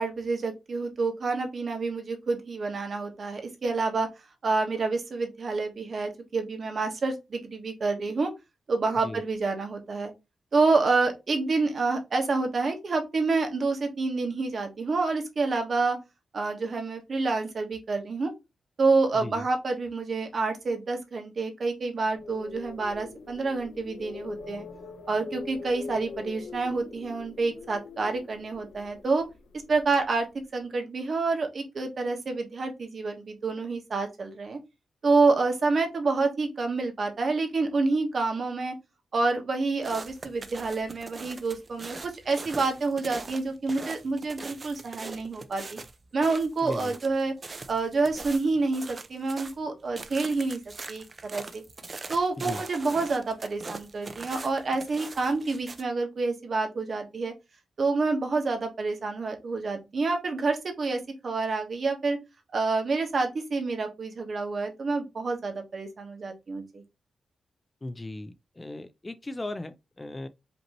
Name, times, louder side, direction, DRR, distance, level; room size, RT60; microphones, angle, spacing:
voice 1, 0.0-4.1 4.4-8.3 8.7-10.1 10.5-16.0 16.3-18.3 18.8-24.6 25.1-29.2 29.7-30.3 30.5-34.6 35.0-38.7 39.1-45.8 46.1-47.3 47.7-50.6 50.9-51.6 52.1-57.3 57.8-62.2 62.5-66.8, right 3 dB, 50° right, 1.3 m, -28 dB
sound 1, 22.0-30.1, left 4 dB, 70° left, 0.7 m, -43 dB
sound 2, 39.8-49.6 50.0-55.8, right 3 dB, 30° right, 0.6 m, -42 dB
voice 2, 46.6-46.9 52.4-52.6 67.8-70.3, left 2 dB, 20° left, 0.4 m, -37 dB
5.2 x 2.9 x 2.9 m
wide cardioid pair, 130°, 0 cm